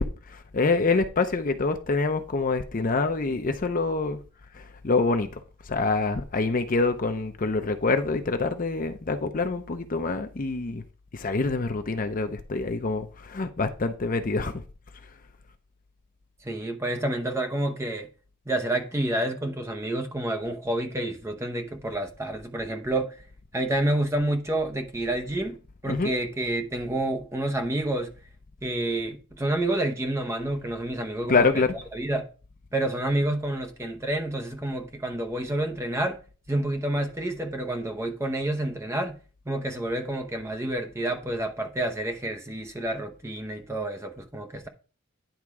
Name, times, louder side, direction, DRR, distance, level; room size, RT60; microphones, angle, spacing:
voice 1, 0.0-4.2 4.5-5.4 5.6-10.8 11.1-14.6 25.9-26.1 31.3-31.7, left 3 dB, 40° left, 0.6 m, -26 dB
voice 2, 16.4-18.1 18.5-23.2 23.5-28.1 28.6-31.6 31.9-32.3 32.7-36.2 36.5-39.2 39.5-44.7, right 1 dB, 10° right, 0.9 m, -29 dB
10.5 x 3.6 x 4.7 m
head